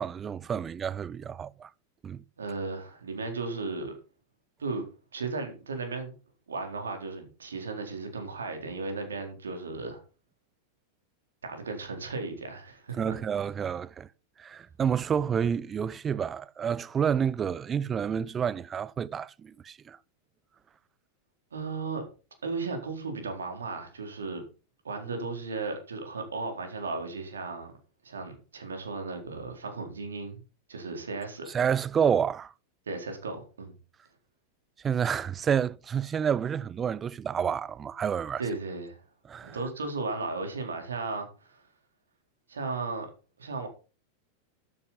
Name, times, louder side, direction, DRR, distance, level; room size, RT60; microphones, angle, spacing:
voice 1, 0.0-1.7 2.0-2.2 12.9-14.1 14.4-20.0 31.5-32.5 34.8-38.4 39.3-39.6, right 7 dB, 20° right, 0.6 m, -29 dB
voice 2, 2.4-3.9 4.6-4.8 5.1-6.1 6.5-10.0 11.4-13.2 21.5-22.0 22.4-24.4 24.8-27.7 28.0-30.4 30.7-31.5 32.9-33.8 38.4-39.0 39.4-41.6 42.5-43.1 43.4-43.7, right 3 dB, 70° right, 4.0 m, -35 dB
12.5 x 9.9 x 4.2 m
figure-of-eight pair, 90°, 0 cm